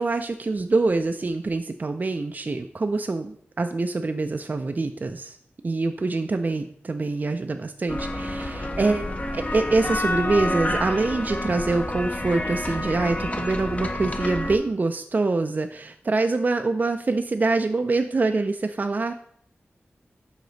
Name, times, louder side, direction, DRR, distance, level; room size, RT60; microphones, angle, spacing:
voice 1, 0.0-5.4 5.6-19.1, right 3 dB, 40° right, 6 dB, 0.4 m, -25 dB
sound 1, 7.9-14.6, left 1 dB, 35° left, 0.7 m, -29 dB
5.7 x 5.0 x 3.9 m, 0.66 s
wide cardioid pair, 65°, 4 cm